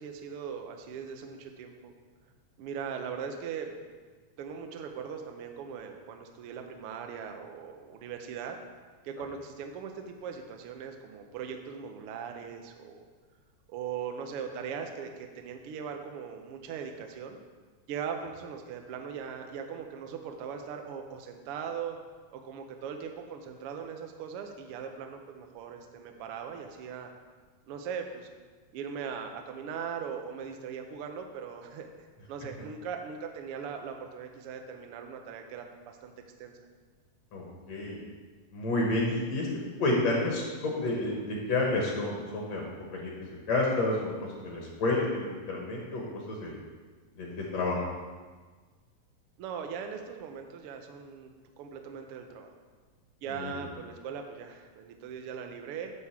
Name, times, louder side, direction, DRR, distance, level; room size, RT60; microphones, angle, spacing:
voice 1, 0.0-1.9 2.6-3.7 4.4-8.6 9.0-13.0 13.7-17.4 17.9-22.0 22.3-27.1 27.7-28.3 28.7-31.9 32.3-36.1 36.4-36.6 49.4-51.3 51.6-52.5 53.2-55.9, right 7 dB, 80° right, 4 dB, 1.3 m, -39 dB
voice 2, 37.3-38.0 38.5-39.5 39.8-42.7 42.9-43.1 43.5-44.1 44.4-46.5 47.2-47.8 53.4-53.5, left 2 dB, 60° left, -2 dB, 2.3 m, -30 dB
11.0 x 3.6 x 7.2 m, 1.4 s
omnidirectional pair, 3.5 m